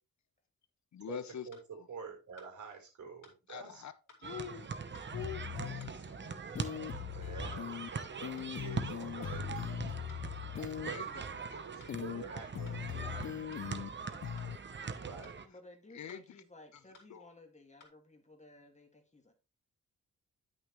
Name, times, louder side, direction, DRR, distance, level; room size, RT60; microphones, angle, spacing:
voice 1, 0.9-1.5 1.8-1.9 3.5-3.9 4.2-4.7 5.1-6.4 10.8-11.1 11.5-11.6 15.1-15.3 15.9-16.4 16.7-16.8 17.1-17.3, left 9 dB, 60° left, 0.8 m, -45 dB
sound 1, 1.5-1.7 2.4-2.5 3.2-3.4 4.1-4.3 4.9-5.1 5.8-6.0 6.6-6.8 7.5-7.7 8.4-8.5 9.2-9.4 10.1-10.3 10.9-11.1 11.8-12.0 12.7-12.8 13.5-13.7 14.4-14.5 15.2-15.4 16.1-16.2 16.9-17.1 17.8-17.9, left 4 dB, 80° left, 2.5 m, -59 dB
voice 2, 1.5-3.8 7.1-9.5 10.6-12.9 15.0-15.4, right 5 dB, 65° right, 4.0 m, -48 dB
sound 2, 4.2-15.5, right 5 dB, 35° right, 0.9 m, -42 dB
sound 3, 5.1-5.9 6.6-7.9 8.2-10.9 11.9-12.2 12.6-13.9 14.2-14.6, left 10 dB, 40° left, 0.4 m, -40 dB
voice 3, 12.9-13.4 15.4-19.3, left 2 dB, 20° left, 2.1 m, -57 dB
10.5 x 6.4 x 3.1 m
cardioid pair, 100°, 31 cm